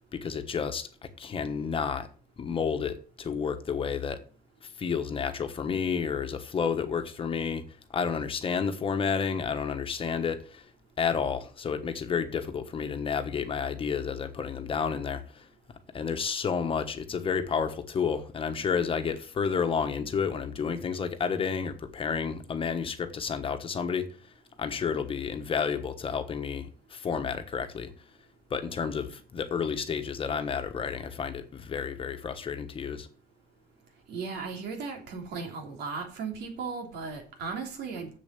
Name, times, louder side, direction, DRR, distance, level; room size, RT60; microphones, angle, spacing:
voice 1, 0.1-0.9 1.2-2.1 2.4-4.2 4.6-7.6 7.9-10.7 11.0-15.5 15.9-24.1 24.6-27.9 28.5-33.1, left 6 dB, 35° left, 1.2 m, -30 dB
voice 2, 34.1-38.1, right 5 dB, 85° right, 3.2 m, -36 dB
7.6 x 7.1 x 8.2 m
cardioid pair, 150°, 17 cm